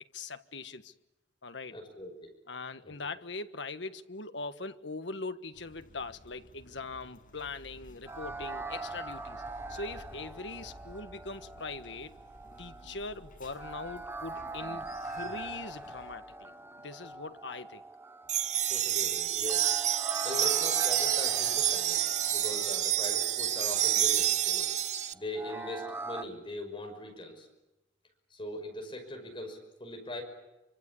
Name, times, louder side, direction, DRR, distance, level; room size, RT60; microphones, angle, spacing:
voice 1, 0.1-0.9 1.4-1.8 2.5-9.4 9.7-12.2 12.6-16.5 16.8-17.8, left 3 dB, 75° left, 1.4 m, -41 dB
voice 2, 1.7-2.3 2.8-3.1 18.7-19.7 20.2-24.7 25.1-27.5 28.3-30.2, left 1 dB, 25° left, 5.8 m, -41 dB
sound 1, 5.5-16.2, equal, 45° left, 7.6 m, -53 dB
sound 2, 8.1-26.2, right 3 dB, 15° right, 1.1 m, -43 dB
sound 3, 18.3-25.1, right 11 dB, 40° right, 0.9 m, -28 dB
26.5 x 25.0 x 8.5 m
head